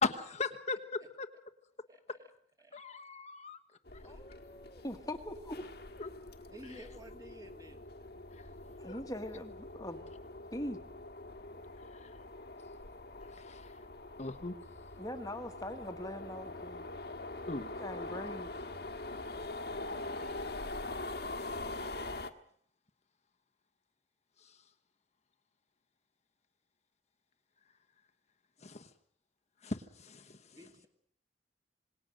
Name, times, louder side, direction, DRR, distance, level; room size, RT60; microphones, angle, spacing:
voice 1, 0.0-1.3 2.1-2.2 2.7-3.6 3.9-4.0 6.0-6.1 6.7-6.8 8.3-8.5 8.8-9.0 11.9-12.1 13.3-13.8 14.2-14.5 17.5-17.6 20.2-20.6 21.4-22.0 24.4-24.6 28.6-28.9 29.6-30.6, left 4 dB, 40° left, 8 dB, 1.2 m, -39 dB
sound 1, 3.9-22.3, left 2 dB, 65° left, 1.6 m, -44 dB
voice 2, 4.0-5.7 8.8-10.0 10.5-10.8 15.0-16.8 17.8-18.5, left 1 dB, 20° left, 6 dB, 1.6 m, -42 dB
voice 3, 6.5-7.9 30.5-30.9, equal, 20° right, 4 dB, 2.6 m, -52 dB
27.0 x 19.5 x 6.5 m, 0.62 s
head